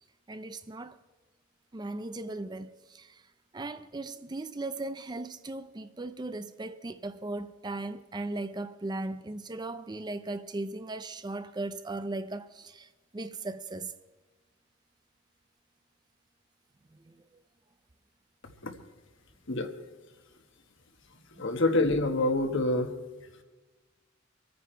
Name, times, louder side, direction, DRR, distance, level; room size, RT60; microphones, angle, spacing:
voice 1, 0.3-1.0 1.7-13.9 16.9-17.4 21.3-21.5, right 2 dB, 20° right, 0.5 m, -38 dB
voice 2, 21.3-22.9, left 2 dB, 60° left, 1.4 m, -26 dB
24.0 x 9.4 x 4.5 m
head